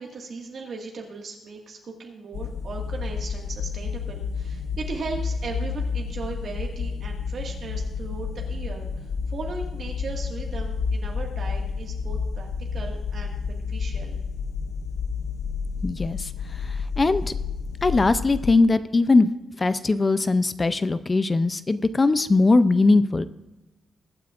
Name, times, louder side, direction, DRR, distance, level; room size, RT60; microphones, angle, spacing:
voice 1, 0.0-14.2, right 4 dB, 45° right, 0 dB, 1.7 m, -37 dB
sound 1, 2.3-18.6, left 5 dB, 75° left, 0.6 m, -30 dB
voice 2, 15.8-17.3 17.8-19.3 19.6-23.2, left 3 dB, 20° left, 13 dB, 0.4 m, -20 dB
22.5 x 9.4 x 2.4 m, 1.1 s
wide cardioid pair, 180°, 0 cm